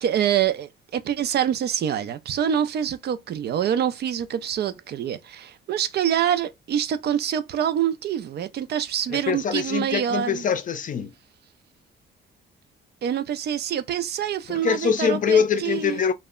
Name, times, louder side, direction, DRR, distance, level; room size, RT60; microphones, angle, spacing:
voice 1, 0.0-10.4 13.0-16.0, right 9 dB, 55° right, 0.4 m, -26 dB
voice 2, 9.1-11.1 14.5-16.1, left 6 dB, 40° left, 0.5 m, -23 dB
2.1 x 2.0 x 3.5 m
cardioid pair, 90°, 20 cm